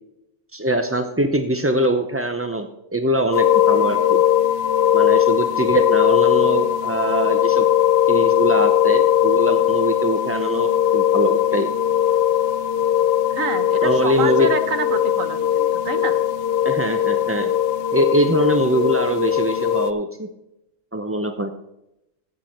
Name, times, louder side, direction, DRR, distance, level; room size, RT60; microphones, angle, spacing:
voice 1, 0.5-4.2 4.9-7.7 8.1-11.7 13.8-14.5 16.6-17.5 17.9-20.3 20.9-21.5, right 1 dB, 20° right, 6 dB, 0.3 m, -22 dB
sound 1, 3.3-19.9, left 11 dB, 55° left, 0.7 m, -19 dB
voice 2, 13.3-16.2, right 5 dB, 65° right, 9 dB, 1.3 m, -27 dB
15.5 x 6.9 x 4.3 m, 0.89 s
omnidirectional pair, 1.5 m